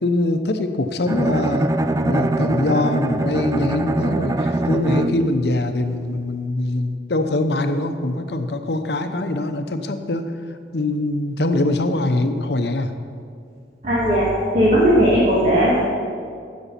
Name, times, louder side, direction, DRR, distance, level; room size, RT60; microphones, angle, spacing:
voice 1, 0.0-1.7 2.0-10.2 10.7-12.9, left 2 dB, 70° left, 8 dB, 0.8 m, -23 dB
Bowed string instrument, 1.1-5.4, right 2 dB, 20° right, 0.3 m, -22 dB
voice 2, 13.8-14.2 14.5-15.8, equal, 40° right, -7 dB, 2.2 m, -16 dB
15.0 x 6.3 x 5.7 m, 2.3 s
head